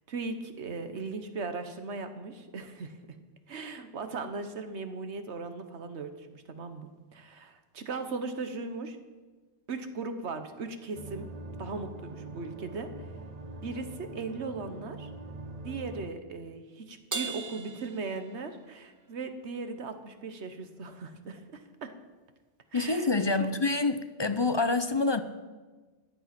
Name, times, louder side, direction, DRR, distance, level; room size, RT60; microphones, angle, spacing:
voice 1, 0.1-3.0 3.5-9.0 9.7-11.3 11.6-13.1 13.6-15.1 15.6-21.9 22.7-23.1 23.4-23.5, right 4 dB, 80° right, 9 dB, 1.4 m, -38 dB
sound 1, 10.9-16.1, right 2 dB, 40° right, 0.9 m, -43 dB
Crash cymbal, 17.1-18.8, right 4 dB, 25° right, 0.5 m, -38 dB
voice 2, 22.7-25.2, left 3 dB, 30° left, 10 dB, 0.5 m, -27 dB
14.5 x 10.0 x 5.9 m, 1.3 s
omnidirectional pair, 1.1 m